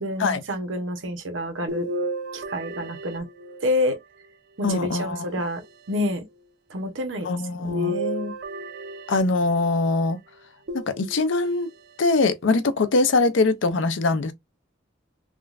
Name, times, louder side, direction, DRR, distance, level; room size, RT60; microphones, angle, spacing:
voice 1, 0.0-1.9 2.3-3.3 3.6-4.0 4.6-5.6 5.9-6.2 6.7-7.3 7.6-8.3, left 1 dB, 85° right, 0.8 m, -28 dB
sound 1, 1.7-3.9 4.7-5.7 7.7-9.7 10.7-11.5 12.2-12.3 13.7-13.8, equal, 55° right, 0.5 m, -33 dB
voice 2, 4.6-5.2 7.2-8.0 9.1-10.2 10.7-11.7 12.0-14.3, left 3 dB, 80° left, 0.5 m, -22 dB
3.6 x 2.2 x 2.3 m
head